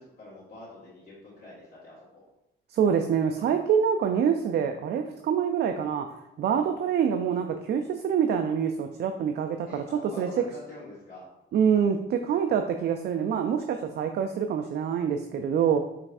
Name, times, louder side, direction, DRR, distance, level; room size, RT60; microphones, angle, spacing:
voice 1, 0.0-2.2 6.4-6.6 9.6-11.3, left 1 dB, 50° left, -9 dB, 1.6 m, -46 dB
voice 2, 2.7-10.3 11.5-15.8, right 7 dB, 55° right, 5 dB, 0.4 m, -26 dB
5.7 x 3.2 x 2.6 m, 0.90 s
cardioid pair, 90°, 20 cm